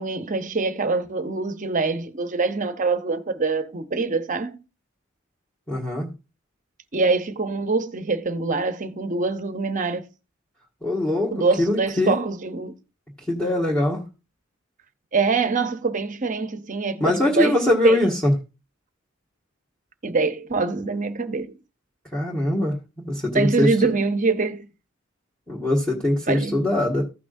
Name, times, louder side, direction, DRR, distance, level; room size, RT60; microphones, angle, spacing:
voice 1, 0.0-4.6 6.9-10.0 11.3-12.8 15.1-18.0 20.0-21.6 23.3-24.7 26.3-26.7, right 4 dB, 40° right, 0.7 m, -24 dB
voice 2, 5.7-6.1 10.8-12.2 13.3-14.0 17.0-18.3 22.1-23.7 25.5-27.0, left 1 dB, 5° left, 1.7 m, -22 dB
15.0 x 6.0 x 2.6 m
head